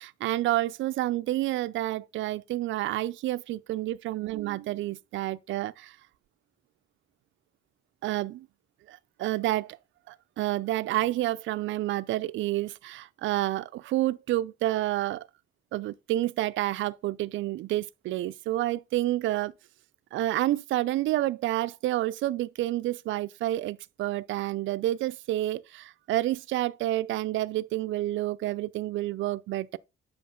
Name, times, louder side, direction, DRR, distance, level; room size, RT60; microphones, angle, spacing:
voice 1, 0.0-6.0 8.0-8.5 8.9-9.8 10.1-15.3 15.7-19.5 20.1-29.8, right 15 dB, 75° right, 0.4 m, -29 dB
7.7 x 5.8 x 3.7 m
cardioid pair, 90°, 20 cm